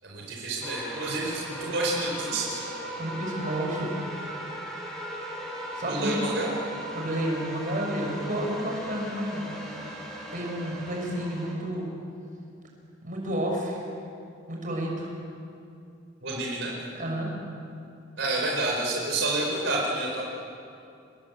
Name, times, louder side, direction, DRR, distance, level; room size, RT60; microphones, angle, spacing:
voice 1, 0.0-2.6 5.8-6.5 16.2-16.7 18.2-20.2, right 2 dB, 70° right, -2 dB, 4.7 m, -29 dB
sound 1, 0.6-11.5, right 1 dB, ahead, 6.3 m, -38 dB
voice 2, 3.0-3.9 5.8-6.2 6.9-9.5 10.3-11.9 13.0-13.8 14.5-15.1 17.0-17.3, right 1 dB, 45° right, 0 dB, 6.4 m, -30 dB
28.0 x 21.5 x 8.2 m, 2.6 s
head